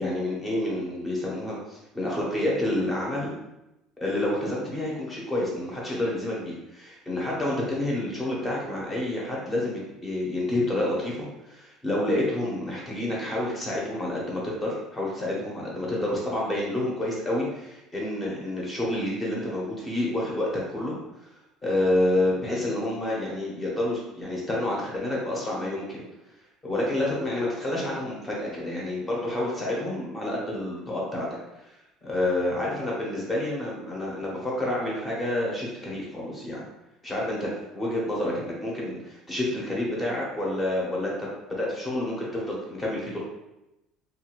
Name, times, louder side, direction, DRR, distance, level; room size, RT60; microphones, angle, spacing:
voice 1, 0.0-3.3 4.0-21.0 21.6-26.1 26.6-31.3 31.5-31.6 32.0-36.6 37.0-43.2, left 1 dB, 15° left, -4 dB, 0.8 m, -29 dB
2.5 x 2.5 x 3.0 m, 0.92 s
cardioid pair, 145°, 0 cm